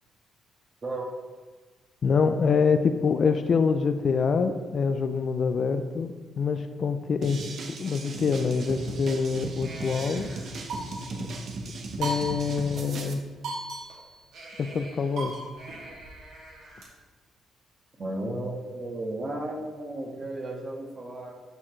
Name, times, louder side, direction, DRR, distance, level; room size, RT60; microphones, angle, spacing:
voice 1, 2.0-10.3 12.0-13.2 14.6-15.4, left 5 dB, 50° left, 9 dB, 0.4 m, -25 dB
sound 1, 7.2-13.1, right 3 dB, 60° right, 0.9 m, -37 dB
sound 2, 9.6-11.3 12.0-12.8 13.1-13.2 13.4-16.8, right 2 dB, 75° right, 2.3 m, -38 dB
voice 2, 18.0-21.3, right 1 dB, 35° right, 1 dB, 1.5 m, -34 dB
11.0 x 4.4 x 3.2 m, 1.4 s
cardioid pair, 90°, 0 cm